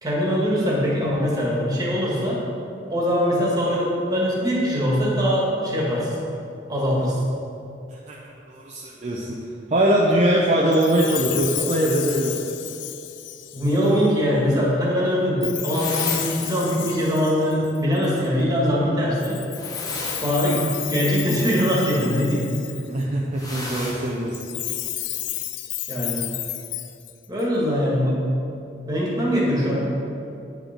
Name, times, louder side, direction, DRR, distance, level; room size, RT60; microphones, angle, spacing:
voice 1, 0.0-2.4 2.9-6.2 6.7-7.2 13.5-19.4 20.2-22.5 25.9-26.3 27.3-28.2 28.9-29.9, equal, 20° right, -5 dB, 1.7 m, -22 dB
voice 2, 7.9-9.4 9.7-12.3 22.9-24.4, right 1 dB, 40° right, -3 dB, 0.6 m, -22 dB
Chime, 10.7-14.1 15.4-18.3 19.2-23.0 24.3-27.4, left 14 dB, 75° left, 0.4 m, -32 dB
sound 1, 15.7-16.6 19.5-20.8 23.3-24.2, left 1 dB, 20° left, 1.1 m, -34 dB
8.9 x 5.5 x 4.4 m, 2.7 s
head